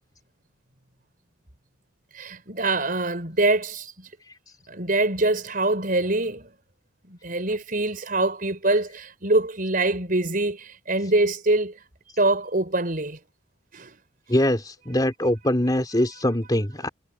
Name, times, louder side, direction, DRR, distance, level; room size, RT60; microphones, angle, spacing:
voice 1, 2.1-4.1 4.7-6.5 7.1-11.8 12.2-13.2 13.7-13.9, right 2 dB, 45° right, 4.8 m, -24 dB
voice 2, 14.3-16.9, left 1 dB, 20° left, 3.1 m, -23 dB
head